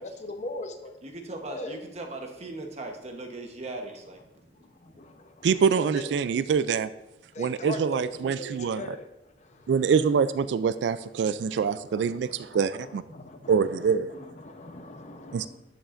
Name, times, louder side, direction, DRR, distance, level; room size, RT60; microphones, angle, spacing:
voice 1, 0.0-0.9 1.4-1.8 5.4-6.1 7.4-7.8 8.2-9.0 11.5-11.6 11.9-15.5, left 2 dB, 40° left, 6 dB, 0.8 m, -40 dB
voice 2, 1.0-4.2 4.6-4.7 4.9-5.0, right 2 dB, 40° right, 3 dB, 1.0 m, -38 dB
voice 3, 5.4-6.9 7.4-8.8 9.7-13.0 13.5-14.1 15.3-15.5, right 6 dB, 75° right, 14 dB, 0.3 m, -25 dB
11.0 x 8.0 x 2.5 m, 0.92 s
head